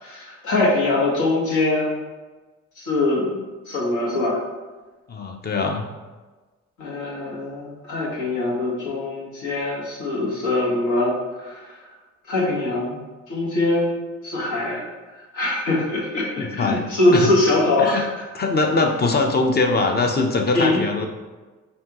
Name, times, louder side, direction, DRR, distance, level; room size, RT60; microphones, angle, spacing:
voice 1, 0.0-1.9 2.8-3.4 3.7-4.4 6.8-11.1 11.4-11.6 12.3-13.0 13.3-14.0 14.2-14.8 15.3-18.2 20.5-20.8, left 2 dB, 80° left, -4 dB, 1.4 m, -22 dB
voice 2, 5.1-5.9 16.4-16.8 17.1-17.3 17.8-18.0 18.3-21.1, left 3 dB, 35° left, 3 dB, 0.6 m, -22 dB
5.5 x 2.7 x 2.9 m, 1.3 s
cardioid pair, 90°, 30 cm